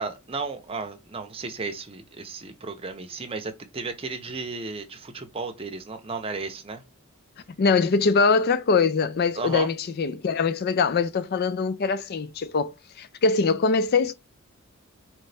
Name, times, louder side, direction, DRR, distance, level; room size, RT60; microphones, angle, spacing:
voice 1, 0.0-6.8 9.4-9.7, right 4 dB, 25° right, 0.7 m, -34 dB
voice 2, 7.6-14.1, left 4 dB, 45° left, 0.4 m, -23 dB
3.9 x 3.1 x 3.3 m
head